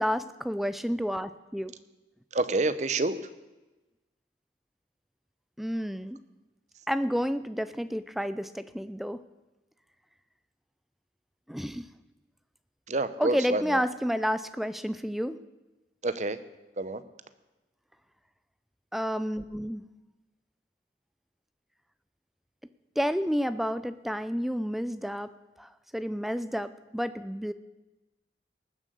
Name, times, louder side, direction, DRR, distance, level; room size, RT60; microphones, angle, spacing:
voice 1, 0.0-1.7 5.6-6.2 6.9-9.2 11.5-11.8 13.2-15.4 18.9-19.8 23.0-25.3 25.6-27.5, equal, ahead, 13 dB, 0.4 m, -30 dB
voice 2, 2.3-3.1 12.9-13.8 16.0-16.4 16.8-17.0, right 2 dB, 40° right, 13 dB, 0.8 m, -28 dB
19.5 x 7.6 x 6.8 m, 1.1 s
head